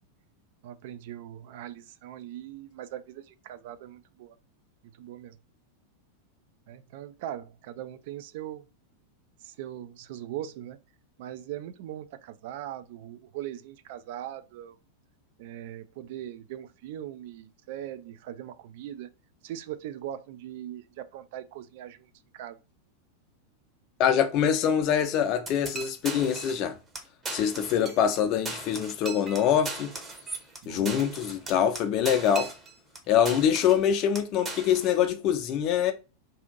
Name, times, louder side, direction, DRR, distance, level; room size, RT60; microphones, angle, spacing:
voice 1, 0.6-4.4 5.0-5.4 6.7-8.7 9.4-10.8 11.2-14.8 15.4-19.1 19.4-22.6 30.6-31.0, right 11 dB, 50° right, 0.3 m, -40 dB
voice 2, 24.0-26.8 27.3-29.9 30.7-32.5 33.1-35.9, left 9 dB, 40° left, 0.5 m, -24 dB
sound 1, 25.5-26.6 26.9-27.0 27.2-28.2 28.4-33.0 33.3-33.8 34.1-35.0, right 3 dB, 20° right, 0.7 m, -38 dB
2.8 x 2.5 x 3.7 m
figure-of-eight pair, 90°, 0 cm